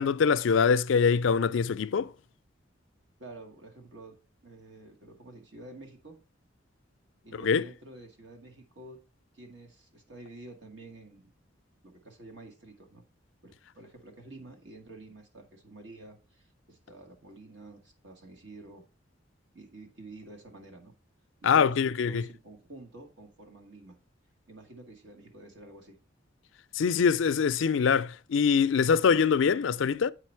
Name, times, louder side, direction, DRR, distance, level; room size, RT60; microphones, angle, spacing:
voice 1, 0.0-2.1 7.3-7.6 21.4-22.2 26.7-30.1, left 6 dB, 80° left, 0.4 m, -24 dB
voice 2, 3.2-4.2 4.4-6.2 7.2-9.0 9.3-11.3 11.8-13.0 13.4-18.9 19.5-20.9 21.4-21.8 22.1-24.0 24.5-26.0, right 2 dB, 70° right, 2.1 m, -49 dB
8.3 x 5.0 x 4.5 m
head